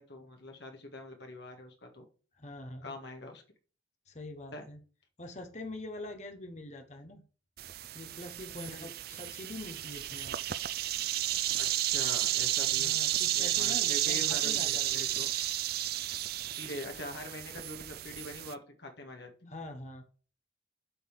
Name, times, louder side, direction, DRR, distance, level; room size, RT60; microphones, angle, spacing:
voice 1, 0.0-2.0 2.8-3.4 4.5-4.6 8.5-8.9 11.6-13.0 13.3-15.3 16.5-19.5, left 1 dB, 55° left, 3 dB, 1.7 m, -44 dB
voice 2, 2.4-2.9 4.1-4.8 5.2-7.2 7.9-10.4 12.8-15.1 19.5-20.0, left 2 dB, 35° left, 5 dB, 1.1 m, -44 dB
sound 1, 7.6-18.5, right 13 dB, 50° right, 0.4 m, -32 dB
8.0 x 3.9 x 6.4 m, 0.39 s
head